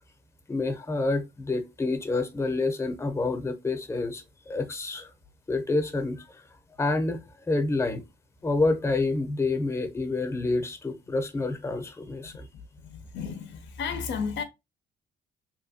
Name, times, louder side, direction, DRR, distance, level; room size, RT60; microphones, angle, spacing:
voice 1, 0.5-5.1 5.5-6.4 6.8-7.2 7.5-8.0 8.4-12.5, left 3 dB, 15° left, 0.6 m, -28 dB
voice 2, 12.8-14.4, left 6 dB, 65° left, 0.4 m, -33 dB
2.8 x 2.2 x 2.6 m
cardioid pair, 90°, 20 cm